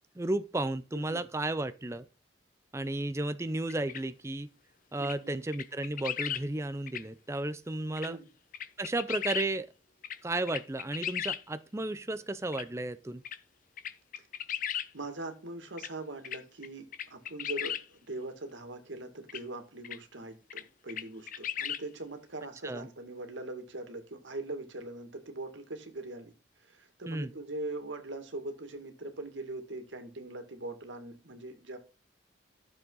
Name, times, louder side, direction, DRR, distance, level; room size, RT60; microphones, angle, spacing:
voice 1, 0.2-2.0 2.7-4.5 4.9-8.2 8.8-9.7 10.2-13.2 22.6-22.9 27.1-27.3, right 2 dB, 15° right, 0.5 m, -33 dB
voice 2, 0.9-1.2 5.0-5.4 8.1-8.3 14.9-26.3 26.7-31.8, right 2 dB, 90° right, 2.2 m, -41 dB
sound 1, 3.7-4.0 5.0-5.2 5.5-6.4 6.9-7.0 8.0-8.1 8.5-9.5 10.0-10.2 10.5-11.4 12.5-12.6 13.2-13.4 13.8-14.9 15.8-15.9 16.2-16.7 16.9-17.8 19.3-19.4 19.8-20.0 20.5-20.6 20.9-21.8, left 10 dB, 45° left, 0.7 m, -36 dB
12.5 x 7.2 x 4.0 m
head